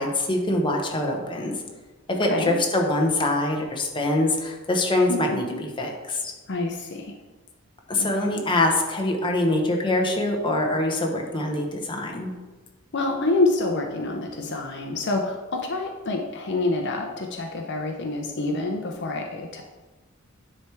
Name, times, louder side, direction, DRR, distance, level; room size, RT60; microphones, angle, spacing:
voice 1, 0.0-1.5 2.1-6.3 7.9-12.3, left 2 dB, 25° left, 1 dB, 0.9 m, -24 dB
voice 2, 2.2-2.5 5.1-5.6 6.5-7.2 8.0-8.3 12.9-19.6, left 2 dB, 55° left, 2 dB, 0.6 m, -27 dB
9.7 x 3.4 x 4.6 m, 1.2 s
head